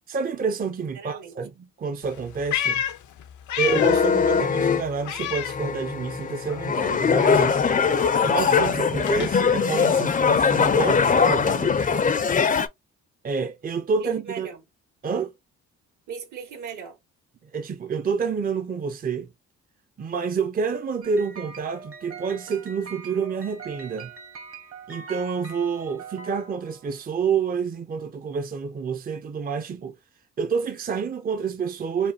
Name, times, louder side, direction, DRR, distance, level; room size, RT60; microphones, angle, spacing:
voice 1, 0.1-2.8 3.6-7.6 8.2-11.9 13.2-14.5 15.0-15.3 17.4-19.3 20.0-24.1 24.9-29.9 30.4-32.1, right 5 dB, 30° right, 0.6 m, -28 dB
voice 2, 0.9-1.4 14.0-14.6 16.1-17.0, right 6 dB, 75° right, 1.9 m, -39 dB
Meow, 2.0-4.2 4.5-6.2 6.5-10.6, left 10 dB, 75° left, 0.7 m, -32 dB
sound 1, 3.6-4.8 5.4-12.7, left 6 dB, 30° left, 0.5 m, -21 dB
sound 2, 21.0-27.0, right 5 dB, 50° right, 1.2 m, -43 dB
5.1 x 2.2 x 2.6 m
cardioid pair, 90°, 30 cm